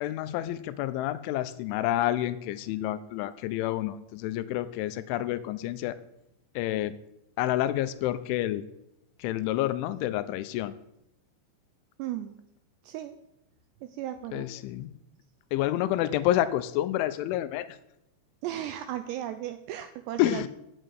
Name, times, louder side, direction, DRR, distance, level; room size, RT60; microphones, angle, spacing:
voice 1, 0.0-6.0 6.6-7.0 7.4-8.6 9.2-10.8 14.3-14.9 15.5-17.7 20.2-20.5, left 13 dB, 85° left, 13 dB, 3.1 m, -29 dB
voice 2, 12.0-12.4 12.8-13.2 13.8-14.5 18.4-20.5, right 12 dB, 85° right, 10 dB, 2.5 m, -35 dB
9.1 x 8.5 x 9.2 m, 0.84 s
omnidirectional pair, 5.6 m